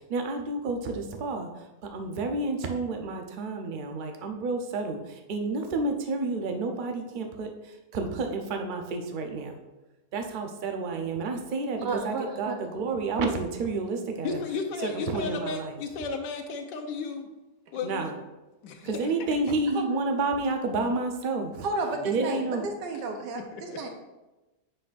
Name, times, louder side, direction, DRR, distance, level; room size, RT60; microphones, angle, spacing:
voice 1, 0.1-1.5 1.8-5.0 5.3-7.5 7.9-9.5 10.1-14.4 14.8-15.8 17.8-18.1 18.8-21.6 22.0-22.6, right 3 dB, 65° right, 4 dB, 0.4 m, -30 dB
voice 2, 11.8-12.6 19.7-19.8 21.6-23.9, right 3 dB, 85° right, 3 dB, 1.4 m, -32 dB
voice 3, 14.2-17.3 17.7-18.1 18.6-18.9 21.9-22.0 23.3-23.9, left 4 dB, 85° left, 5 dB, 1.4 m, -34 dB
7.7 x 6.1 x 2.5 m, 1.0 s
omnidirectional pair, 1.8 m